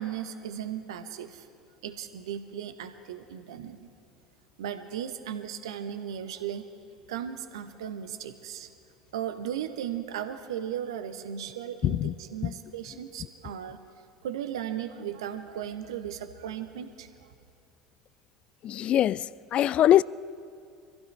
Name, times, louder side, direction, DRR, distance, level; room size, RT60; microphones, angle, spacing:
voice 1, 0.0-1.5 1.8-3.9 4.6-6.7 7.1-8.7 9.1-13.8 14.2-17.3, right 9 dB, 70° right, 1.0 m, -36 dB
voice 2, 11.8-12.1 12.4-12.5 18.6-20.0, left 12 dB, 40° left, 0.3 m, -23 dB
25.5 x 15.5 x 3.4 m
figure-of-eight pair, 70°, 3 cm